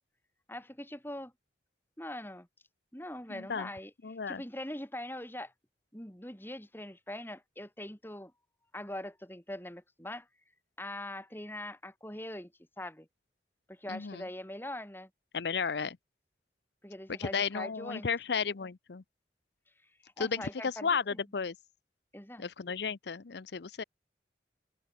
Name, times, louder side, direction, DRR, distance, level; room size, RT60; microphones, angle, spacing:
voice 1, 0.5-1.3 2.0-2.5 2.9-3.9 4.3-5.5 5.9-8.3 8.7-10.3 10.8-12.5 12.8-13.1 13.7-15.1 16.8-18.1 20.0-21.2 22.1-22.5, left 1 dB, 10° left, 4.1 m, -42 dB
voice 2, 3.3-3.7 4.0-4.4 13.9-14.2 15.3-16.0 17.2-19.0 20.2-21.5 22.4-23.8, left 5 dB, 75° left, 0.6 m, -33 dB
head